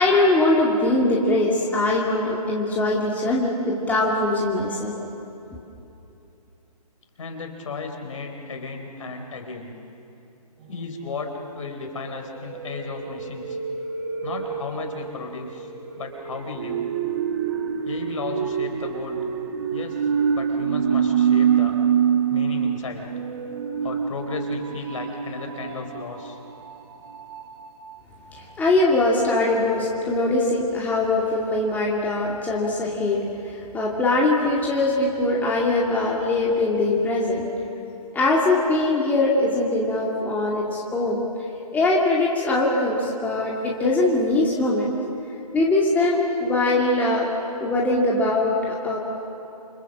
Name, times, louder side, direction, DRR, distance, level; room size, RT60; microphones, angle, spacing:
voice 1, 0.0-4.9 28.6-37.5 38.1-41.2 41.7-44.9 45.5-47.3 47.6-49.0, left 2 dB, 10° left, -4 dB, 2.4 m, -22 dB
voice 2, 7.2-9.7 10.7-13.6 14.2-15.7 16.0-16.9 17.8-19.2 19.7-20.1 20.3-21.7 22.3-23.1 23.8-26.4, left 4 dB, 55° left, 4 dB, 3.8 m, -34 dB
sound 1, 10.7-10.9 12.0-27.9 28.4-28.5 28.6-28.7, right 8 dB, 40° right, 1.9 m, -26 dB
28.5 x 25.0 x 7.5 m, 2.8 s
figure-of-eight pair, 140°, 20 cm